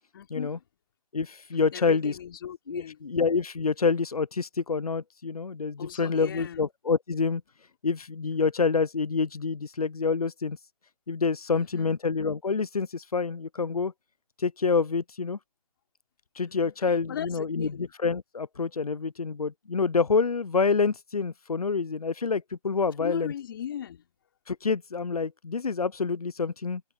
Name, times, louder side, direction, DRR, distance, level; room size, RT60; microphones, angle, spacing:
voice 1, 0.1-0.6 1.7-3.0 5.8-6.7 11.5-12.0 16.5-16.7 17.1-17.9 23.0-24.1, left 9 dB, 40° left, 4.7 m, -38 dB
voice 2, 1.1-2.2 2.7-7.4 7.8-10.6 11.1-13.9 14.4-15.4 16.3-23.3 24.5-26.8, left 5 dB, 90° left, 0.7 m, -27 dB
figure-of-eight pair, 155°, 18 cm